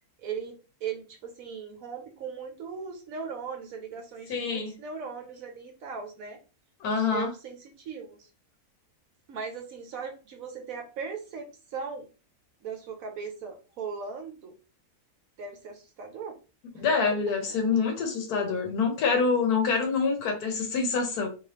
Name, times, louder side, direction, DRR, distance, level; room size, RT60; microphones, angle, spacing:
voice 1, 0.2-6.4 7.0-8.3 9.3-12.1 12.6-14.5 15.4-16.4 16.8-16.9, right 5 dB, 70° right, 4 dB, 1.1 m, -38 dB
voice 2, 4.3-4.7 6.8-7.3 16.8-21.3, left 5 dB, 85° left, 3 dB, 1.3 m, -26 dB
3.1 x 3.1 x 2.9 m, 0.33 s
omnidirectional pair, 1.6 m